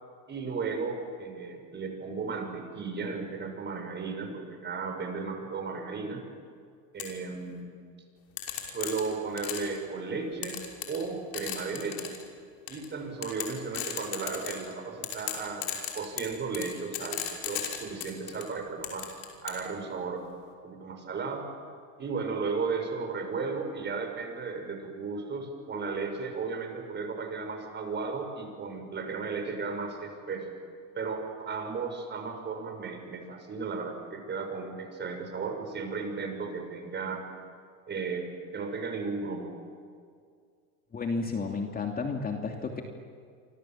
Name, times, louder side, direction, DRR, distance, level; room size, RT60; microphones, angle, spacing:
voice 1, 0.3-6.2 6.9-7.8 8.7-10.6 10.9-12.2 12.7-19.1 19.4-20.3 20.6-21.5 22.0-30.6 30.9-37.2 37.9-39.5, right 4 dB, 25° right, 5 dB, 6.0 m, -35 dB
sound 1, 7.0-7.1 8.4-9.8 10.4-11.1 11.3-12.2 12.7-12.9 13.2-14.7 15.0-18.4 18.8-19.6, left 11 dB, 70° left, 5.8 m, -35 dB
voice 2, 40.9-42.8, left 4 dB, 20° left, 2 dB, 2.8 m, -32 dB
28.5 x 25.5 x 7.6 m, 2.1 s
supercardioid pair, 115°, 40 cm